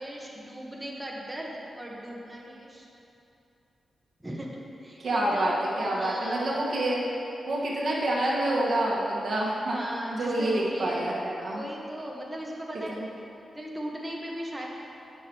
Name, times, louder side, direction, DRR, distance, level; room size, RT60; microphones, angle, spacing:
voice 1, 0.0-2.9 4.2-4.5 4.8-6.5 9.7-11.1 11.5-13.1 13.5-14.7, equal, 15° right, -3 dB, 1.4 m, -37 dB
voice 2, 5.0-5.5 5.8-7.1 7.4-9.8 10.1-11.6 12.9-13.1, right 1 dB, 65° right, -4 dB, 1.5 m, -27 dB
8.0 x 6.6 x 4.6 m, 2.9 s
cardioid pair, 50°, 0 cm